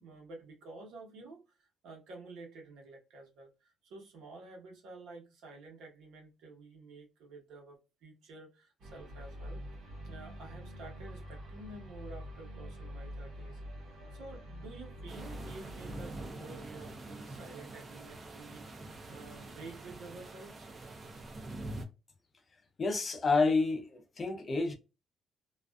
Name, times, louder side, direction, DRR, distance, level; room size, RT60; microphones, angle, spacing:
voice 1, 0.0-9.6 10.0-13.6 14.1-20.7, right 3 dB, 85° right, 1.0 m, -50 dB
sound 1, 8.8-16.3, equal, 60° right, 0.9 m, -45 dB
sound 2, 15.1-21.8, right 2 dB, 30° right, 0.5 m, -45 dB
voice 2, 22.8-24.7, left 3 dB, 30° left, 0.5 m, -29 dB
2.4 x 2.3 x 2.3 m
cardioid pair, 130°, 0 cm